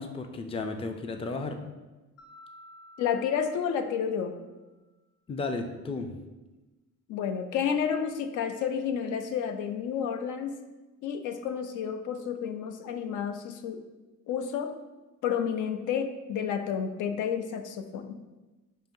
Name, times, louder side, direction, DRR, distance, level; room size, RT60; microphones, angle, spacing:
voice 1, 0.0-1.6 5.3-6.1, left 3 dB, 20° left, 5 dB, 0.4 m, -34 dB
Mallet percussion, 2.2-4.6, left 1 dB, 55° left, 0.9 m, -53 dB
voice 2, 3.0-4.4 7.1-10.5 11.0-13.8 14.3-14.8 15.2-18.2, left 7 dB, 80° left, 8 dB, 0.5 m, -30 dB
6.1 x 2.7 x 2.6 m, 1.1 s
cardioid pair, 90°, 30 cm